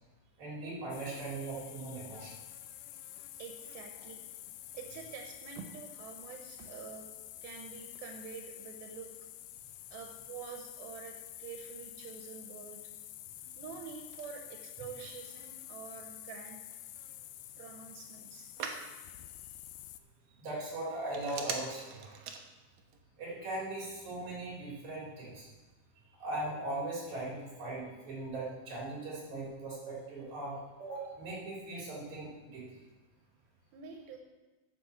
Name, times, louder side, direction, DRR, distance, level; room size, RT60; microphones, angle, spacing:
voice 1, 0.4-2.4 20.4-22.1 23.2-25.5 26.2-32.6, right 2 dB, 50° right, -5 dB, 4.9 m, -39 dB
sound 1, 0.9-20.0, left 13 dB, 90° left, 1.7 m, -49 dB
voice 2, 3.4-4.2 4.7-7.1 7.4-9.1 9.9-12.9 13.5-16.6 17.6-18.5 33.7-34.2, right 6 dB, 90° right, 3 dB, 2.7 m, -47 dB
Telephone, 13.4-23.0, right 6 dB, 70° right, 2.0 m, -48 dB
10.5 x 6.0 x 7.2 m, 1.2 s
omnidirectional pair, 4.1 m